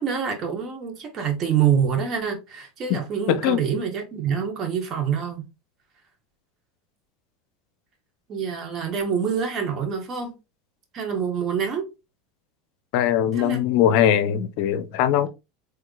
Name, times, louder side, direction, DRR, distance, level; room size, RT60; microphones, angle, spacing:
voice 1, 0.0-5.5 8.3-10.4 10.9-11.9 13.3-13.6 13.9-14.0, right 7 dB, 40° right, 1.2 m, -26 dB
voice 2, 3.3-3.6 12.9-15.3, left 10 dB, 65° left, 0.5 m, -21 dB
3.6 x 3.2 x 2.3 m
hypercardioid pair, 90°, 0 cm